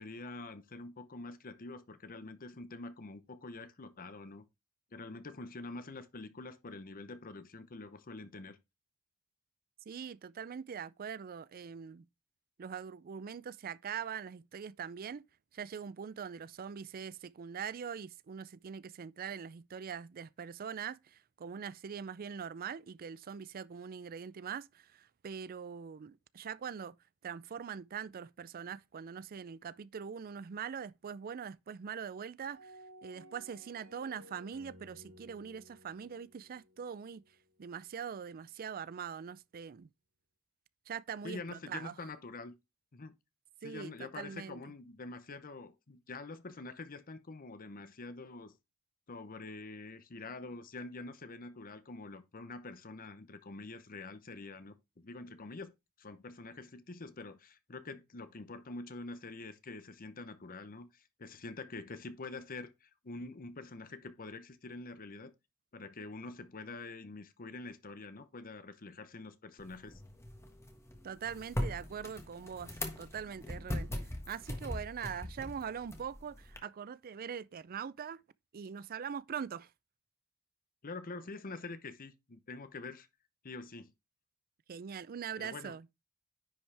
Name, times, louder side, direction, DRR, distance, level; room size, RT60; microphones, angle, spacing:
voice 1, 0.0-4.4 4.9-8.6 41.2-42.5 42.9-43.1 43.6-48.5 49.1-55.7 56.0-65.3 65.7-70.0 80.8-83.1 83.4-83.9 85.4-85.7, left 3 dB, 40° left, 0.8 m, -46 dB
voice 2, 9.9-12.0 12.6-15.2 15.5-27.0 27.2-37.2 37.6-39.9 40.9-42.0 43.6-44.6 71.0-78.2 78.5-79.7 84.7-85.9, right 7 dB, 40° right, 0.4 m, -42 dB
sound 1, 32.5-37.6, equal, 75° right, 2.2 m, -57 dB
sound 2, 69.6-76.6, left 1 dB, 10° left, 1.5 m, -41 dB
10.0 x 5.6 x 3.4 m
head